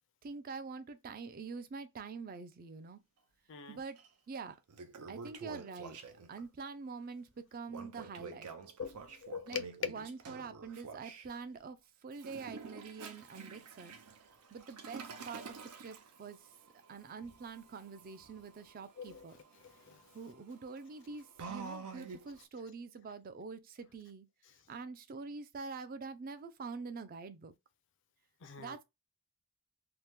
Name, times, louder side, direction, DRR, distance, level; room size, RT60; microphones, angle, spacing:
voice 1, 0.2-3.0 3.7-4.6 5.1-6.0 6.3-8.5 9.5-13.9 14.5-16.5 16.9-19.4 20.1-24.3 24.7-27.5 28.6-28.8, right 4 dB, 40° right, 0.3 m, -45 dB
Toilet flush, 4.0-4.1 4.5-6.4 7.7-11.3 12.1-22.5, right 5 dB, 90° right, 0.5 m, -49 dB
voice 2, 8.8-9.7 19.0-19.2 19.6-20.0 28.4-28.8, left 7 dB, 55° left, 0.4 m, -44 dB
2.8 x 2.1 x 3.3 m
head